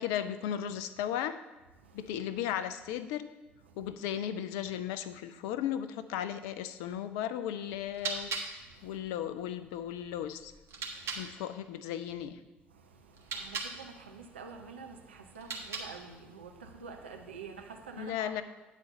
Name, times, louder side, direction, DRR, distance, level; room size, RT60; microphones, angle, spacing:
voice 1, 0.0-1.4 1.9-3.3 3.8-8.3 8.8-10.5 11.2-12.4 18.0-18.4, left 10 dB, 65° left, 12 dB, 0.4 m, -35 dB
voice 2, 1.8-2.1 3.7-3.9 8.6-9.0 10.7-11.3 12.7-18.4, right 5 dB, 80° right, 3 dB, 0.6 m, -48 dB
sound 1, 7.7-11.3 13.1-13.8 15.3-16.1, right 4 dB, 50° right, 1.5 m, -40 dB
9.1 x 4.1 x 6.6 m, 1.1 s
figure-of-eight pair, 50°, 6 cm